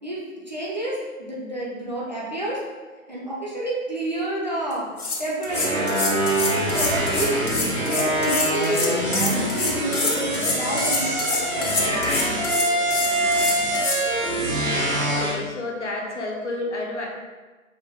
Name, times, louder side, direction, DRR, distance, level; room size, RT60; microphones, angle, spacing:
voice 1, 0.0-2.6 3.1-4.9 5.2-6.1 6.4-7.4 7.9-12.0, right 1 dB, 30° right, -6 dB, 0.5 m, -30 dB
sound 1, 4.7-14.0, left 3 dB, 90° left, 0.9 m, -26 dB
sound 2, 5.5-15.4, right 1 dB, 70° right, 1.1 m, -24 dB
voice 2, 14.9-17.1, left 2 dB, 55° left, -1 dB, 0.7 m, -30 dB
4.8 x 2.0 x 3.0 m, 1.3 s
figure-of-eight pair, 160°, 42 cm